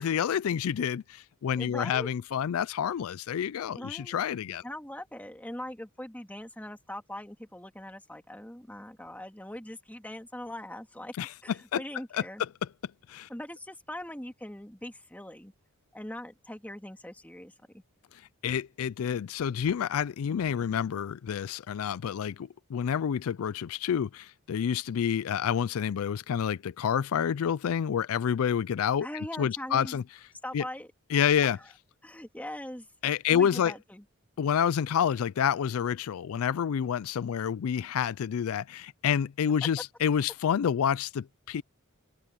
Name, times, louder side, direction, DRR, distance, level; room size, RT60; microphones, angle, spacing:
voice 1, 0.0-4.6 11.2-11.3 11.7-11.8 12.1-12.2 13.1-13.3 18.4-29.1 29.4-30.0 30.5-30.6 31.1-31.6 33.0-33.7 34.4-41.6, left 8 dB, 75° left, 0.4 m, -28 dB
voice 2, 1.6-2.1 3.7-4.2 4.6-11.1 11.4-12.4 13.3-15.5 15.9-17.8 29.0-30.0 30.4-30.9 31.5-31.7 32.0-32.9 33.3-34.0, left 1 dB, 5° left, 2.5 m, -41 dB
open air
head